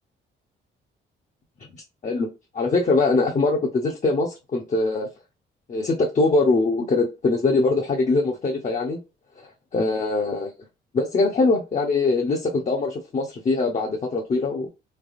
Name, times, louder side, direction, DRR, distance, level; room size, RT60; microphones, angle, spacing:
voice 1, 2.5-5.1 5.7-9.0 9.4-10.5 10.9-14.7, left 3 dB, 40° left, 0.8 m, -22 dB
3.4 x 3.3 x 2.4 m
cardioid pair, 90°, 20 cm